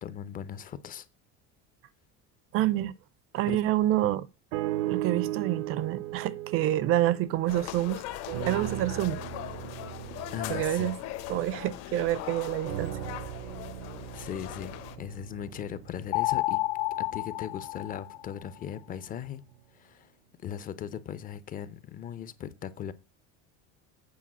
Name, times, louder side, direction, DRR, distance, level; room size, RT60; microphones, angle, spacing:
voice 1, 0.0-1.1 3.5-3.6 10.3-10.9 14.1-16.6 17.0-19.4 19.7-20.1 20.4-22.9, left 9 dB, 25° left, 0.5 m, -38 dB
voice 2, 2.5-2.9 3.3-4.3 4.9-8.0 8.5-9.2 10.5-10.9 11.3-12.9, right 14 dB, 45° right, 0.5 m, -27 dB
sound 1, 4.5-7.9 8.3-12.0 12.6-16.9 17.5-17.6, right 15 dB, 75° right, 0.7 m, -37 dB
sound 2, 7.5-15.0, left 13 dB, 55° left, 1.0 m, -40 dB
sound 3, 16.1-18.6, left 19 dB, 70° left, 1.3 m, -30 dB
8.5 x 4.7 x 7.2 m
cardioid pair, 170°, 32 cm